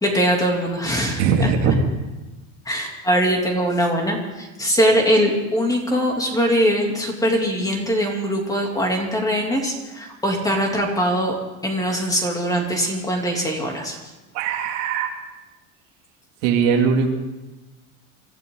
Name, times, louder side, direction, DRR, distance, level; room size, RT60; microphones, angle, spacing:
voice 1, 0.0-1.5 2.6-11.4 11.6-14.0, equal, 10° left, 1 dB, 3.1 m, -22 dB
voice 2, 1.2-1.8 14.3-15.1 16.4-17.1, right 6 dB, 85° right, 1 dB, 2.8 m, -20 dB
25.0 x 13.5 x 4.0 m, 1.1 s
cardioid pair, 135°, 37 cm